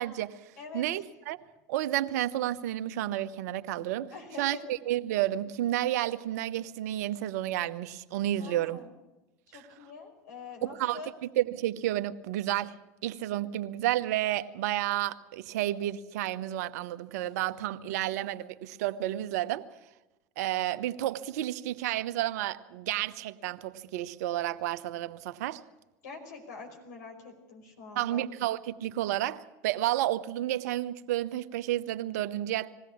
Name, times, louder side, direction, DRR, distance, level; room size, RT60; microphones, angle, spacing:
voice 1, 0.0-0.5 0.7-1.4 1.7-4.1 4.4-8.8 9.5-9.6 10.6-11.0 11.4-12.7 13.0-19.6 20.4-25.6 27.9-32.8, right 14 dB, 70° right, 12 dB, 1.0 m, -31 dB
voice 2, 0.6-0.9 4.1-4.6 8.3-8.9 9.5-11.1 26.0-28.3, left 4 dB, 75° left, 3 dB, 5.2 m, -45 dB
20.5 x 16.0 x 8.6 m, 1.0 s
hypercardioid pair, 90°, 9 cm